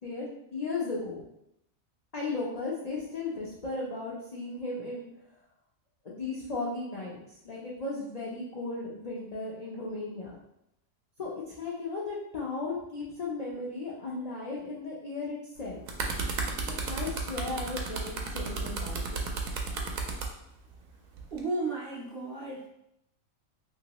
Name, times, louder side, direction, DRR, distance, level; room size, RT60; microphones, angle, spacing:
voice 1, 0.0-1.2 2.1-5.1 6.0-10.4 11.2-15.8 16.7-19.3, left 3 dB, 60° left, -5 dB, 0.4 m, -36 dB
sound 1, 15.6-20.3 21.2-21.4, right 5 dB, 80° right, 1.0 m, -34 dB
voice 2, 21.3-22.7, right 2 dB, 55° right, -4 dB, 0.7 m, -34 dB
2.9 x 2.8 x 2.8 m, 0.79 s
omnidirectional pair, 1.4 m